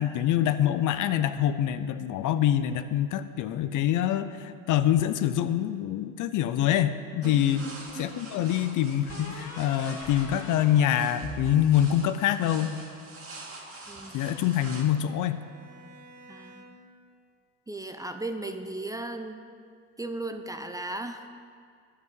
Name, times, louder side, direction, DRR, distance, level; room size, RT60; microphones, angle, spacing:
voice 1, 0.0-7.7 7.9-12.8 14.1-15.4, left 11 dB, 55° left, 11 dB, 0.6 m, -25 dB
sound 1, 7.2-14.8, right 2 dB, 35° right, 2.3 m, -46 dB
sound 2, 7.3-8.1 9.1-12.4, equal, 35° left, 2.9 m, -42 dB
voice 2, 13.9-14.2 16.3-16.7 17.7-19.4 20.0-21.3, right 2 dB, 10° right, 7 dB, 0.6 m, -36 dB
Bowed string instrument, 13.9-17.0, right 2 dB, 60° right, 1.4 m, -53 dB
10.5 x 6.1 x 7.3 m, 2.1 s
supercardioid pair, 85°, 38 cm